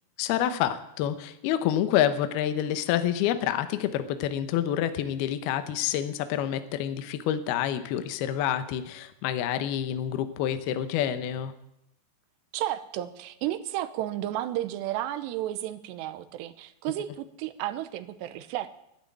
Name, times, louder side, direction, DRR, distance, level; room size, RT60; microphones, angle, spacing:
voice 1, 0.2-11.5, left 10 dB, 70° left, 10 dB, 2.7 m, -28 dB
voice 2, 12.5-18.8, right 13 dB, 80° right, 11 dB, 2.9 m, -32 dB
12.0 x 12.0 x 9.9 m, 0.81 s
omnidirectional pair, 5.2 m